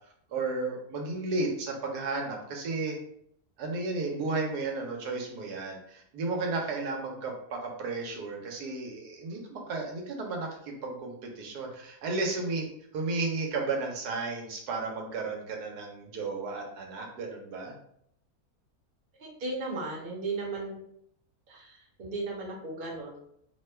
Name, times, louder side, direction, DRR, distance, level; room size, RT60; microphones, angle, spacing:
voice 1, 0.3-3.0 3.6-17.7, right 3 dB, 85° right, 1 dB, 1.2 m, -33 dB
voice 2, 19.2-20.8 21.5-23.2, right 3 dB, 45° right, -2 dB, 0.8 m, -36 dB
2.9 x 2.2 x 3.2 m, 0.70 s
omnidirectional pair, 1.7 m